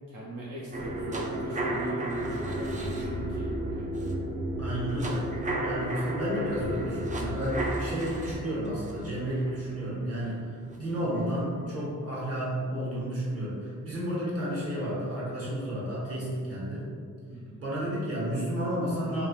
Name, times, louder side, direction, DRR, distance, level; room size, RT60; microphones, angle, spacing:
voice 1, 0.1-3.9 17.3-17.6, right 1 dB, 75° right, -6 dB, 0.7 m, -39 dB
sound 1, 0.7-10.8 11.2-11.3, right 1 dB, 25° right, 0.4 m, -33 dB
voice 2, 4.6-5.3 5.6-16.9 17.6-19.3, equal, 45° right, -7 dB, 1.4 m, -31 dB
3.3 x 2.8 x 3.0 m, 2.2 s
cardioid pair, 95°, 32 cm